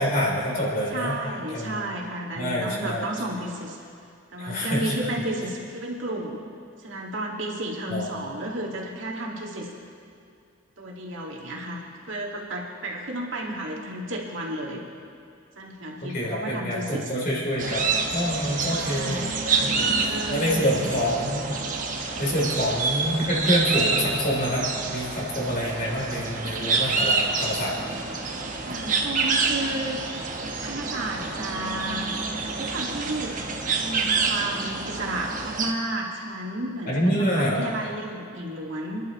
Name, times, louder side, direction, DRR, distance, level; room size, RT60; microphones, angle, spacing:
voice 1, 0.0-1.2 1.5-1.8 2.4-3.1 4.4-4.8 7.9-8.3 16.0-19.3 19.6-21.4 22.2-27.7 36.9-37.6, equal, 45° left, -4 dB, 3.5 m, -26 dB
voice 2, 0.9-3.8 4.3-6.4 6.8-9.7 10.8-14.8 15.6-17.1 18.6-21.3 28.6-30.0 30.6-32.1 32.6-39.1, right 1 dB, 70° right, -2 dB, 2.3 m, -32 dB
sound 1, 17.6-35.7, right 4 dB, 40° right, 1.1 m, -27 dB
27.5 x 11.0 x 3.2 m, 2.4 s
head